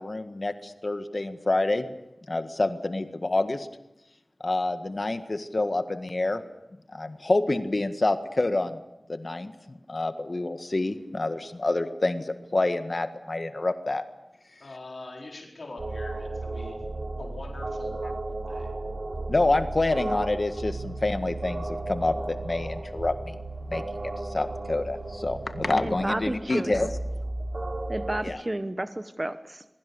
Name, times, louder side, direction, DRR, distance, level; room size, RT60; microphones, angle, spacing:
voice 1, 0.0-1.9 2.3-3.7 4.4-6.4 6.9-8.8 9.1-14.0 19.3-23.4 23.7-23.8 24.3-26.9 28.2-28.4, left 2 dB, 55° left, 9 dB, 1.7 m, -27 dB
voice 2, 14.6-16.8 17.2-18.7, left 2 dB, 80° left, 0 dB, 4.4 m, -43 dB
sound 1, 15.8-28.2, right 2 dB, 70° right, 3.5 m, -34 dB
voice 3, 25.7-26.9 27.9-29.6, right 1 dB, 35° right, 11 dB, 1.1 m, -32 dB
27.0 x 22.5 x 7.0 m, 0.88 s
wide cardioid pair, 50°, 0 cm